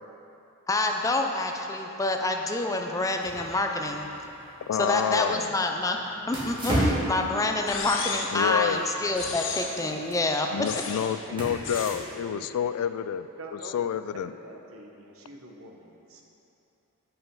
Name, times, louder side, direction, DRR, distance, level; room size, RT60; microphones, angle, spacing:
voice 1, 0.7-4.1 4.8-6.0 6.3-10.5, left 2 dB, 15° left, 3 dB, 0.5 m, -27 dB
sound 1, 3.2-12.4, equal, 20° right, 1.7 m, -34 dB
voice 2, 4.7-5.5 8.3-8.8 10.5-13.3 13.7-14.3, left 8 dB, 85° left, 15 dB, 0.3 m, -28 dB
sound 2, 7.7-8.5 9.1-9.9 10.6-11.2 11.6-12.0, left 5 dB, 60° left, 0.7 m, -34 dB
voice 3, 10.9-12.1 12.3-12.5 13.4-16.2, right 1 dB, 70° right, 1 dB, 1.0 m, -45 dB
8.8 x 5.6 x 5.5 m, 2.8 s
head